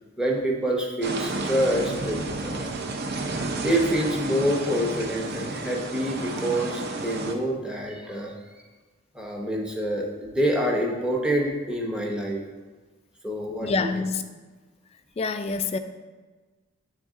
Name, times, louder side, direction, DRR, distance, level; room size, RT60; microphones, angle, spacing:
voice 1, 0.2-2.7 3.6-8.3 9.1-12.4 13.2-13.9, equal, 5° right, -2 dB, 0.7 m, -26 dB
sound 1, 1.0-7.3, right 3 dB, 50° right, 0.6 m, -31 dB
voice 2, 13.6-14.2 15.2-15.8, left 4 dB, 30° left, 9 dB, 0.3 m, -26 dB
10.0 x 3.5 x 3.7 m, 1.3 s
head